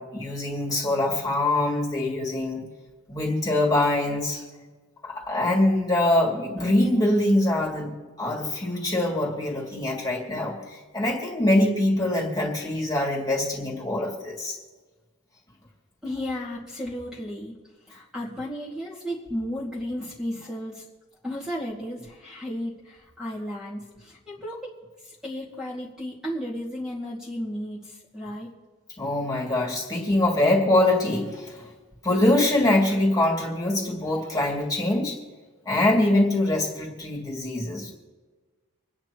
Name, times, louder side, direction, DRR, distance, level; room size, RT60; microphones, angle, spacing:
voice 1, 0.0-2.7 3.1-4.4 5.0-14.6 29.0-31.7 32.0-35.2 35.7-37.9, left 1 dB, 20° left, -3 dB, 2.6 m, -24 dB
voice 2, 16.0-17.6 17.9-20.8 21.2-24.7 25.0-28.5, equal, 5° right, -6 dB, 2.1 m, -34 dB
27.0 x 9.9 x 3.0 m, 1.3 s
head